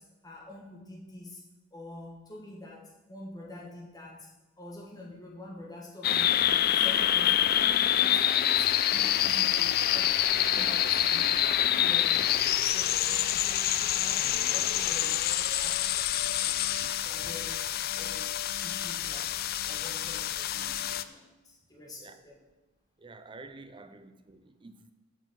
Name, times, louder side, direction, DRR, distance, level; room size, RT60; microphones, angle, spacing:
voice 1, 0.0-1.4 1.7-4.3 4.6-7.5 8.0-11.4 11.8-16.7 17.0-22.4 23.7-24.0, left 2 dB, 20° left, 1.6 m, -47 dB
sound 1, 6.0-21.0, left 11 dB, 50° left, 0.3 m, -27 dB
Rain, 10.3-15.3, right 2 dB, 50° right, 1.5 m, -50 dB
voice 2, 11.3-12.2 16.8-17.3 22.0-22.2 23.0-24.9, right 3 dB, 25° right, 0.5 m, -49 dB
6.9 x 5.2 x 6.8 m
head